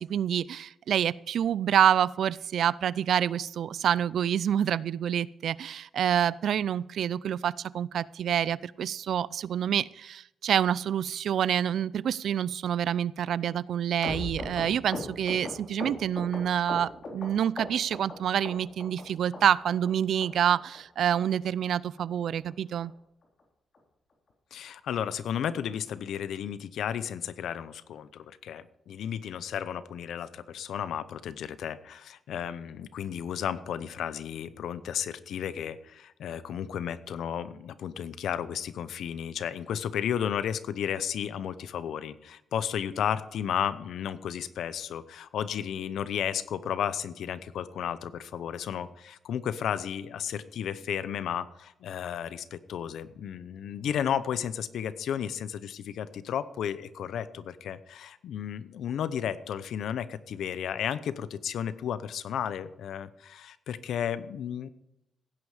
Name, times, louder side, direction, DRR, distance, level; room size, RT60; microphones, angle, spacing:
voice 1, 0.0-22.9, right 9 dB, 70° right, 21 dB, 0.4 m, -27 dB
sound 1, 14.0-17.3 17.6-18.1 18.4-19.0 19.3-19.4 19.7-19.9 20.2-20.3 20.6-20.8 21.1-21.2 21.4-21.7 22.0-22.1 22.3-22.5 22.9-23.0 23.2-23.4 23.7-23.8, left 3 dB, 45° left, 3.6 m, -38 dB
voice 2, 24.5-64.7, left 9 dB, 80° left, 14 dB, 0.8 m, -33 dB
16.5 x 9.5 x 5.0 m, 0.84 s
cardioid pair, 125°, 0 cm